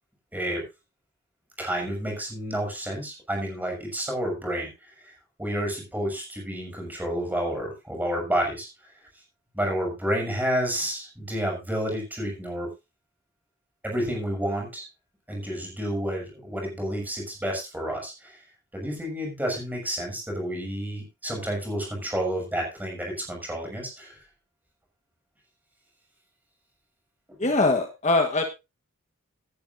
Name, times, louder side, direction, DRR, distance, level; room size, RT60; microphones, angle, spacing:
voice 1, 0.3-0.6 1.6-4.7 5.0-5.1 5.4-8.7 9.5-12.7 13.8-14.9 15.3-18.4 18.7-24.2, equal, 10° right, 0 dB, 6.5 m, -30 dB
voice 2, 27.4-28.4, left 2 dB, 30° left, 4 dB, 1.4 m, -22 dB
17.0 x 10.5 x 2.7 m, 0.26 s
head